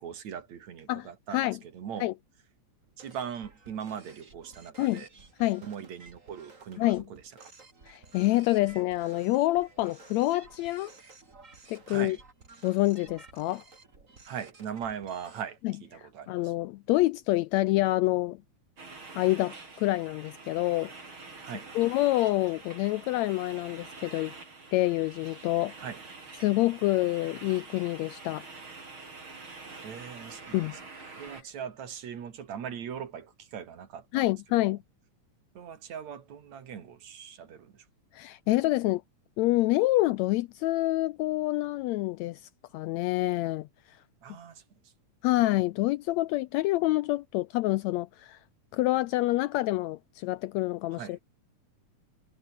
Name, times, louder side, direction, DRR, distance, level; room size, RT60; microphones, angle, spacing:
voice 1, 0.0-2.1 3.0-5.1 5.6-7.5 11.9-12.2 14.3-16.5 21.4-21.7 25.8-26.0 29.8-30.6 31.2-34.3 34.6-34.7 35.5-37.8 44.2-44.6 50.9-51.2, right 8 dB, 65° right, 3.4 m, -40 dB
voice 2, 0.9-1.6 2.0-2.1 4.8-5.0 5.4-5.6 6.8-7.0 7.9-10.9 11.7-12.2 12.6-13.6 15.6-15.7 16.0-18.4 19.1-20.9 21.7-24.3 24.7-25.7 26.4-28.4 30.5-30.8 34.1-34.8 38.1-39.0 39.4-44.0 45.2-48.4 48.7-51.2, left 18 dB, 80° left, 1.6 m, -27 dB
sound 1, 2.8-15.4, right 3 dB, 25° right, 3.2 m, -54 dB
sound 2, 18.8-31.4, right 3 dB, 40° right, 5.5 m, -46 dB
omnidirectional pair, 3.5 m